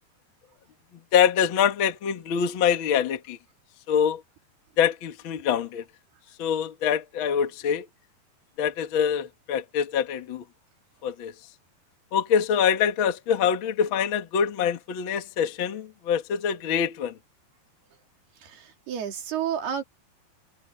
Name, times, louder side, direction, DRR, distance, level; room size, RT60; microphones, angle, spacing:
voice 1, 1.1-3.4 3.9-4.2 4.8-5.8 6.4-7.8 8.6-10.4 11.0-11.3 12.1-17.1, left 8 dB, 60° left, 1.3 m, -24 dB
voice 2, 18.4-19.8, right 9 dB, 70° right, 5.2 m, -31 dB
omnidirectional pair, 4.7 m